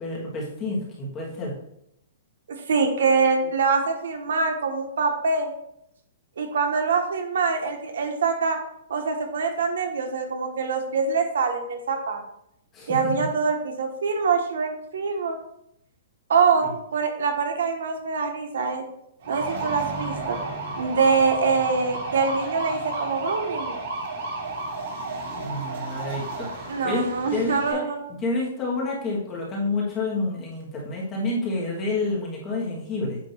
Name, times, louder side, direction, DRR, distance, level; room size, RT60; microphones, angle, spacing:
voice 1, 0.0-1.6 12.7-13.3 25.4-27.8 28.1-33.2, left 2 dB, 15° left, -3 dB, 1.5 m, -29 dB
voice 2, 2.5-5.5 6.4-8.6 8.9-12.2 12.9-15.4 16.3-18.8 19.3-20.4 20.8-23.8 26.7-28.1, right 5 dB, 75° right, 4 dB, 1.3 m, -24 dB
sound 1, 19.2-27.7, right 2 dB, 55° right, 2.8 m, -32 dB
8.7 x 3.0 x 5.8 m, 0.78 s
hypercardioid pair, 175°, 0 cm